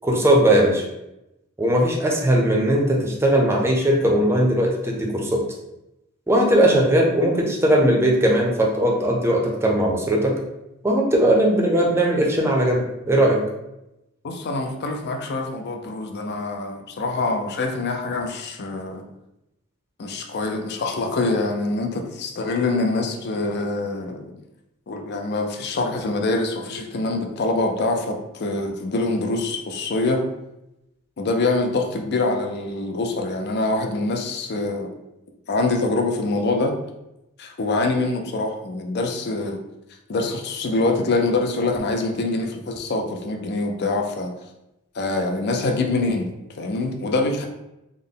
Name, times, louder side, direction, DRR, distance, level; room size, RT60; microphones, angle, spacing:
voice 1, 0.0-0.8 1.6-5.4 6.3-10.3 10.8-13.4, right 1 dB, 10° right, -1 dB, 0.5 m, -19 dB
voice 2, 14.2-19.0 20.0-24.3 24.9-30.3 31.2-34.9 35.5-36.8 37.4-39.6 40.1-44.3 44.9-46.3 46.6-47.5, left 2 dB, 50° left, 4 dB, 0.5 m, -24 dB
3.6 x 2.1 x 3.7 m, 0.91 s
head